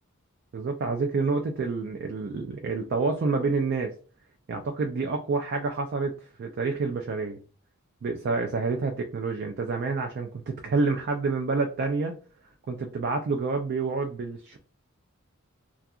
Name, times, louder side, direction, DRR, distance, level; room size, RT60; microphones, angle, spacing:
voice 1, 0.5-3.9 4.5-6.1 6.4-7.4 8.0-12.2 12.7-14.6, right 4 dB, 50° right, 4 dB, 0.3 m, -28 dB
2.7 x 2.3 x 2.3 m, 0.37 s
head